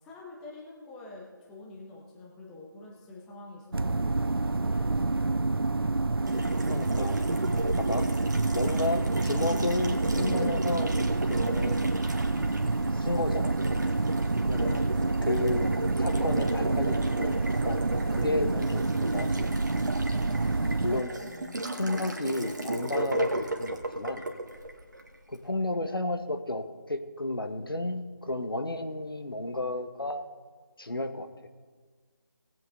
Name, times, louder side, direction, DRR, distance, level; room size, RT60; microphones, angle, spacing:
voice 1, 0.0-5.2 14.6-14.9 18.3-18.8 21.2-21.7, left 2 dB, 5° left, -3 dB, 0.5 m, -46 dB
sound 1, 3.7-21.0, right 3 dB, 90° right, 0.4 m, -28 dB
Water tap faucet, 6.3-25.4, right 1 dB, 55° right, 1.3 m, -35 dB
voice 2, 6.7-7.2 7.8-8.1 8.5-11.8 12.9-13.6 14.4-14.8 15.2-15.7 16.0-17.3 17.6-17.8 18.1-19.6 20.8-21.1 21.8-24.2 25.3-30.3 30.8-31.3, left 2 dB, 75° left, 8 dB, 1.1 m, -32 dB
18.5 x 7.8 x 3.8 m, 1.5 s
figure-of-eight pair, 155°, 12 cm